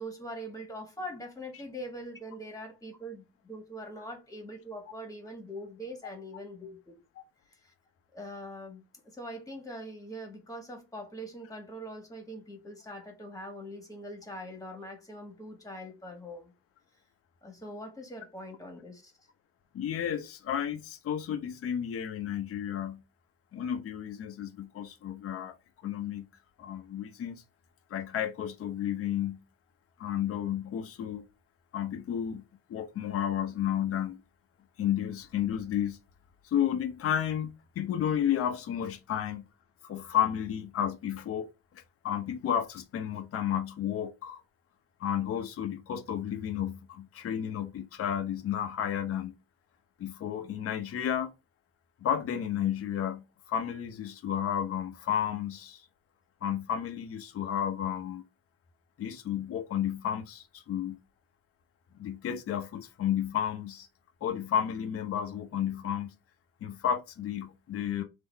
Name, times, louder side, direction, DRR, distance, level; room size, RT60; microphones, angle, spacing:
voice 1, 0.0-6.9 7.6-7.7 8.1-16.5 17.4-19.3, equal, 10° left, 1.6 m, -42 dB
voice 2, 19.7-23.0 23.5-25.5 25.8-26.3 26.6-27.4 27.9-29.4 30.0-31.2 31.7-32.4 32.7-34.2 34.8-36.0 36.4-39.5 39.8-41.5 42.0-44.4 45.0-49.3 50.0-51.3 52.0-55.8 56.4-58.2 59.0-61.0 61.9-63.9 64.2-66.1 66.6-68.0, left 9 dB, 40° left, 0.9 m, -32 dB
3.9 x 2.9 x 4.0 m
cardioid pair, 115°, 34 cm